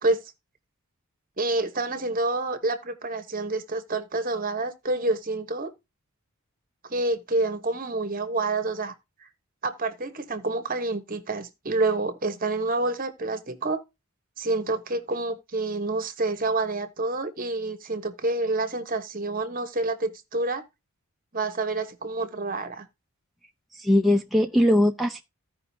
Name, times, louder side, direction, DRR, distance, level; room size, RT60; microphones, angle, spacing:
voice 1, 1.4-5.7 6.9-8.9 9.6-13.8 14.4-20.6 21.3-22.9, right 2 dB, 40° right, 1.1 m, -28 dB
voice 2, 23.8-25.2, left 1 dB, ahead, 0.6 m, -20 dB
15.5 x 5.3 x 2.7 m
head